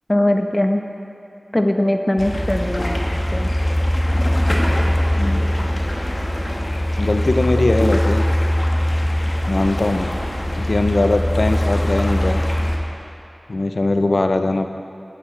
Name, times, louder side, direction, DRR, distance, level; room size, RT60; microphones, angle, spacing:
voice 1, 0.1-0.8 1.5-3.5, left 1 dB, 25° left, 4 dB, 0.9 m, -20 dB
sound 1, 2.2-12.8, equal, 65° left, 1.3 m, -21 dB
voice 2, 5.1-5.6 7.0-8.3 9.5-10.1 10.6-12.4 13.5-14.7, left 2 dB, 80° left, 7 dB, 0.5 m, -20 dB
15.5 x 10.0 x 3.3 m, 2.9 s
wide cardioid pair, 45°, 0 cm